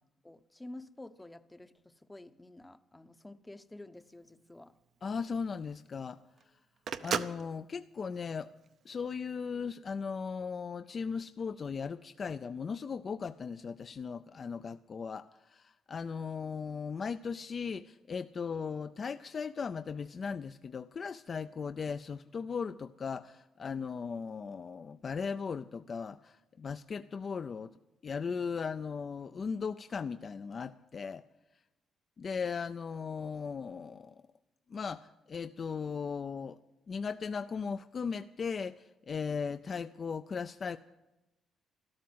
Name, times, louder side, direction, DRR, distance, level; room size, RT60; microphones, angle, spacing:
voice 1, 0.0-4.8, left 1 dB, 10° left, 0.7 m, -50 dB
Telephone, 4.0-9.2, right 7 dB, 65° right, 0.7 m, -39 dB
voice 2, 5.0-6.2 7.0-8.5 8.9-27.7 28.0-31.2 32.2-34.2 34.7-36.6 36.9-40.8, left 5 dB, 45° left, 0.4 m, -37 dB
13.0 x 12.5 x 7.8 m
cardioid pair, 90°, 0 cm